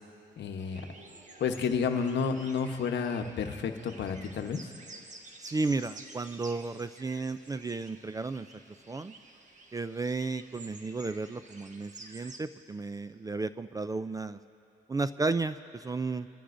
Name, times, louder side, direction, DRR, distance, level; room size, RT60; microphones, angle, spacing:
voice 1, 0.4-0.8 1.4-4.6, left 6 dB, 65° left, 6 dB, 1.0 m, -30 dB
sound 1, 0.6-12.4, right 2 dB, 40° right, 1.3 m, -51 dB
voice 2, 5.4-8.5 8.9-9.2 9.7-14.4 14.9-16.3, right 3 dB, 20° right, 12 dB, 0.3 m, -33 dB
25.0 x 14.5 x 2.6 m, 2.6 s
cardioid pair, 90°, 20 cm